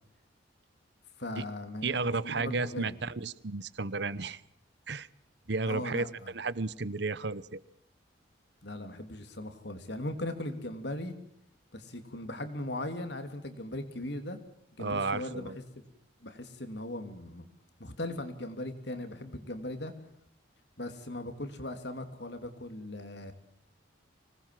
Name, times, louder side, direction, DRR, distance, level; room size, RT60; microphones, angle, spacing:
voice 1, 1.2-3.0 5.7-6.3 8.6-11.2 11.7-14.4 14.7-15.8 16.2-17.5 17.8-19.9 20.8-23.3, left 1 dB, 60° left, 7 dB, 3.0 m, -39 dB
voice 2, 1.8-4.4 4.9-5.1 5.5-7.6 14.8-15.6, right 3 dB, 60° right, 19 dB, 0.9 m, -33 dB
25.5 x 19.5 x 7.6 m, 0.72 s
head